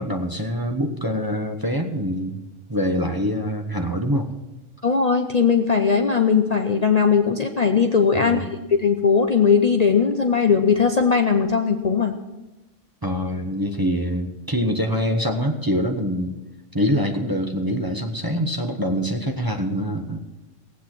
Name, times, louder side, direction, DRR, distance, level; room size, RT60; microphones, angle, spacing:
voice 1, 0.0-2.4 2.7-4.3 8.1-8.5 13.0-16.3 16.7-20.2, equal, 20° right, 2 dB, 1.0 m, -24 dB
voice 2, 4.8-8.4 8.8-12.1, left 6 dB, 40° left, 4 dB, 0.7 m, -19 dB
18.0 x 8.4 x 6.1 m, 1.1 s
omnidirectional pair, 1.3 m